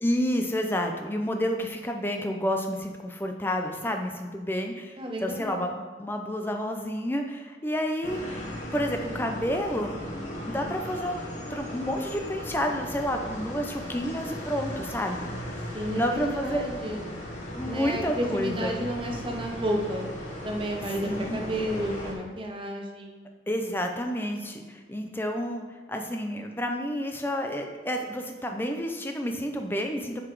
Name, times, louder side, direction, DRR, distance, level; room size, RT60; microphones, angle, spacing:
voice 1, 0.0-8.4 8.7-10.0 10.5-11.2 11.5-15.3 15.9-16.6 17.5-18.8 21.0-21.5 23.5-25.6 25.9-30.2, equal, 10° left, 4 dB, 0.5 m, -30 dB
voice 2, 5.0-5.7 15.7-17.0 17.7-20.1 20.4-23.3, equal, 30° right, 1 dB, 0.8 m, -31 dB
sound 1, 8.0-22.1, left 1 dB, 40° left, 1.2 m, -37 dB
7.7 x 4.1 x 4.7 m, 1.4 s
head